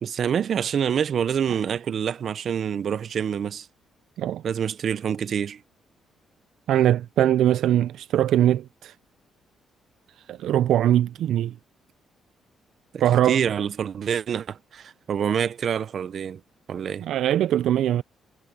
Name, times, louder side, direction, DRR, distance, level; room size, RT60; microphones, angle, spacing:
voice 1, 0.0-3.7 4.4-5.6 12.9-16.4 16.7-17.1, right 8 dB, 55° right, 0.7 m, -26 dB
voice 2, 6.7-8.9 10.3-11.5 13.0-13.4 17.0-18.0, right 11 dB, 75° right, 0.4 m, -21 dB
cardioid pair, 90°, 0 cm